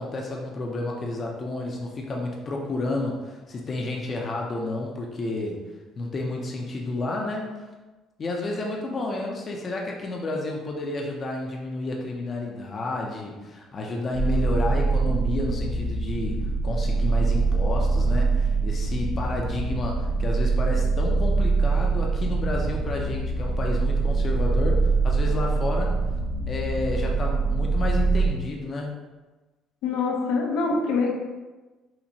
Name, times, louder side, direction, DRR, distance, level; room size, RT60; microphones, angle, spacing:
voice 1, 0.0-5.6 6.0-7.7 8.2-26.1 26.5-28.9, left 2 dB, 30° left, 0 dB, 0.5 m, -31 dB
sound 1, 14.1-28.3, right 3 dB, 75° right, 0.6 m, -24 dB
voice 2, 29.8-31.1, left 4 dB, 85° left, 0 dB, 0.7 m, -24 dB
5.6 x 2.1 x 2.7 m, 1.2 s
cardioid pair, 140°, 0 cm